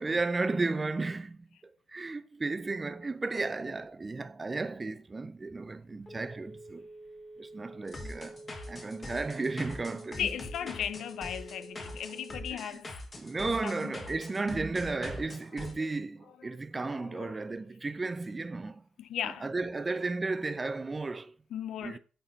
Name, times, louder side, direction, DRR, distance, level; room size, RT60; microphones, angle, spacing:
voice 1, 0.0-1.5 1.9-6.9 7.4-10.2 13.2-18.8 19.4-21.3 21.8-22.0, right 3 dB, 25° right, 0.5 m, -34 dB
Telephone, 5.5-12.8, right 2 dB, 10° left, 0.8 m, -49 dB
sound 1, 7.9-15.7, left 2 dB, 30° left, 1.4 m, -43 dB
voice 2, 10.2-13.0 13.6-13.9 15.5-16.0 16.4-17.4 19.0-19.5 21.5-22.0, left 10 dB, 75° left, 0.4 m, -37 dB
8.7 x 4.1 x 4.3 m
cardioid pair, 105°, 0 cm